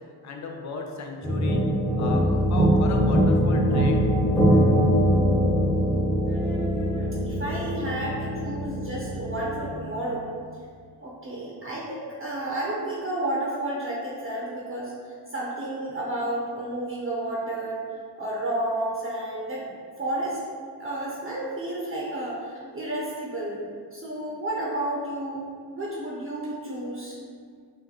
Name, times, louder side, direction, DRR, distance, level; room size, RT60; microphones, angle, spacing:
voice 1, 0.2-1.6 2.0-3.9, left 3 dB, 45° left, 1 dB, 0.6 m, -35 dB
sound 1, 1.2-9.7, equal, ahead, 1.0 m, -22 dB
voice 2, 6.2-10.3 11.0-17.8 18.1-20.4 20.8-23.6 23.9-25.4 25.7-27.2, right 1 dB, 30° right, -6 dB, 0.9 m, -31 dB
6.2 x 2.5 x 3.0 m, 2.1 s
cardioid pair, 115°, 40 cm